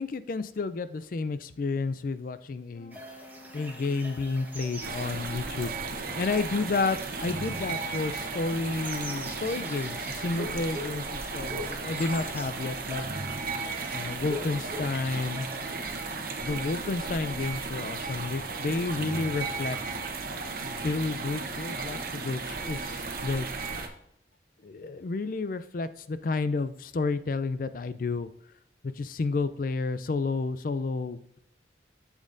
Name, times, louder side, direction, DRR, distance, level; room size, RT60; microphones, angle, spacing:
voice 1, 0.0-3.0 3.5-13.0 13.9-15.5 16.4-19.8 20.6-23.5 24.6-28.3 28.8-31.4, left 3 dB, 50° left, 13 dB, 0.4 m, -31 dB
Brass instrument, 2.7-7.1, left 1 dB, 30° left, 0.9 m, -51 dB
sound 1, 2.9-16.1, equal, 10° right, 1.1 m, -43 dB
sound 2, 4.8-23.9, right 4 dB, 55° right, 0.9 m, -35 dB
8.5 x 7.3 x 2.6 m, 0.73 s
head